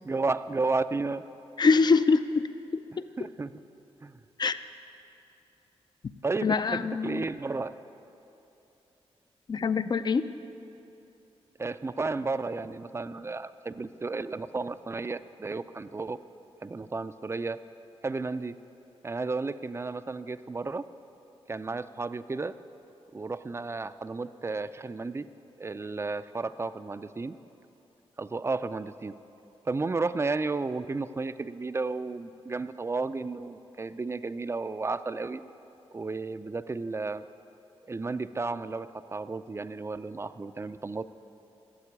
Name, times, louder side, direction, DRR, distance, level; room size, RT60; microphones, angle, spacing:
voice 1, 0.0-1.2 3.2-3.5 4.0-4.2 6.2-7.8 11.6-16.2 16.6-17.6 18.0-18.6 19.0-20.9 21.5-22.6 23.1-25.3 25.6-27.4 28.2-29.1 29.7-35.4 35.9-37.2 37.9-41.1, right 3 dB, 25° right, 13 dB, 0.4 m, -33 dB
voice 2, 1.6-2.5 4.4-4.6 6.4-7.3 9.5-10.2, left 4 dB, 40° left, 12 dB, 0.5 m, -24 dB
13.5 x 7.5 x 9.9 m, 2.9 s
wide cardioid pair, 100°, 11 cm